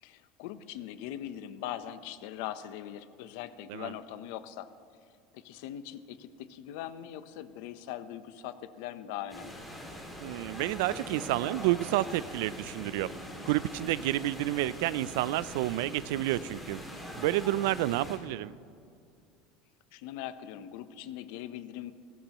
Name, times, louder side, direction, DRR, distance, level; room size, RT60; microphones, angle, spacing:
voice 1, 0.0-4.7 5.3-9.6 19.9-21.9, left 11 dB, 65° left, 12 dB, 0.7 m, -41 dB
sound 1, 9.3-18.2, equal, ahead, 2.4 m, -43 dB
voice 2, 10.2-13.1 13.5-16.8 17.2-18.6, right 15 dB, 75° right, 19 dB, 0.3 m, -30 dB
21.0 x 17.0 x 3.0 m, 2.4 s
cardioid pair, 165°, 0 cm